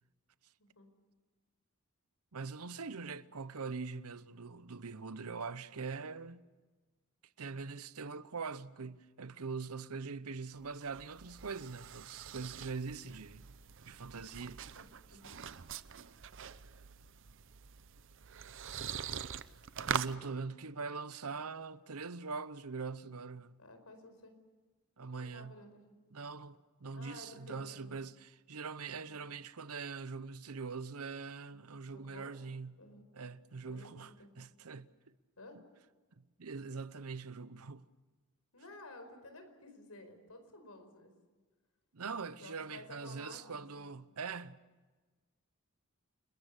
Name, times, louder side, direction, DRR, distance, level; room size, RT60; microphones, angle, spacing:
voice 1, 2.3-6.4 7.4-13.5 13.9-14.6 19.8-23.6 25.0-25.6 26.1-32.8 33.1-34.9 36.4-37.8 41.9-44.6, right 4 dB, 90° right, 0.9 m, -43 dB
sound 1, 10.5-20.1, right 8 dB, 60° right, 0.7 m, -43 dB
voice 2, 14.7-15.4 19.8-20.1 23.6-24.4 25.2-25.8 26.9-27.9 29.0-29.2 31.5-31.6 31.9-32.3 32.8-33.0 33.7-34.3 35.4-35.6 38.5-41.1 42.4-43.8, left 2 dB, 85° left, 4.9 m, -54 dB
29.5 x 21.0 x 6.7 m
head